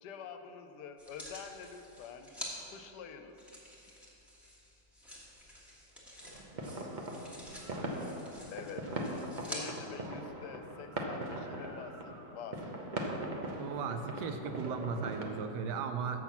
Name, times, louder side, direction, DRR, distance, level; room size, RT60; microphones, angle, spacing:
voice 1, 0.0-2.3 2.7-3.3 8.5-8.9 9.5-13.1 14.6-14.9, left 7 dB, 75° left, 7 dB, 1.1 m, -46 dB
sound 1, 1.0-2.5 3.4-9.6 10.3-10.4, left 1 dB, ahead, 1.2 m, -48 dB
sound 2, 6.2-15.2, right 1 dB, 50° right, 0.5 m, -40 dB
voice 2, 13.6-16.2, right 5 dB, 80° right, 7 dB, 1.3 m, -36 dB
7.0 x 5.9 x 7.0 m, 2.9 s
omnidirectional pair, 1.9 m